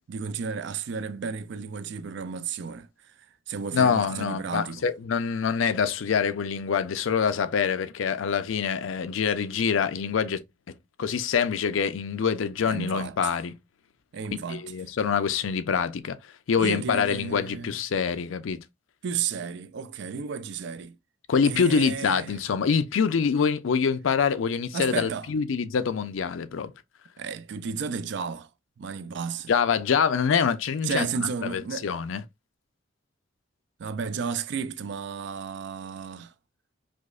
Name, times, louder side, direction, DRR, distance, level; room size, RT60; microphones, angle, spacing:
voice 1, 0.1-4.9 12.7-13.3 14.1-14.6 16.6-17.8 19.0-21.0 21.5-22.4 24.7-25.3 27.2-28.5 28.8-29.5 30.8-31.9 33.8-36.3, right 6 dB, 65° right, 0.4 m, -33 dB
voice 2, 3.7-10.4 10.7-13.5 14.5-18.6 21.3-26.7 29.5-32.2, left 6 dB, 90° left, 0.4 m, -25 dB
5.0 x 2.0 x 2.4 m
head